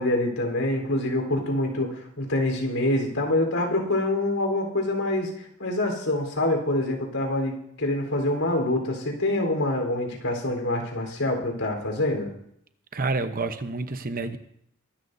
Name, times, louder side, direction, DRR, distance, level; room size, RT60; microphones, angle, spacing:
voice 1, 0.0-12.3, left 1 dB, 85° left, 1 dB, 4.1 m, -26 dB
voice 2, 12.9-14.4, right 3 dB, 45° right, 9 dB, 0.9 m, -28 dB
23.5 x 13.0 x 2.7 m, 0.73 s
head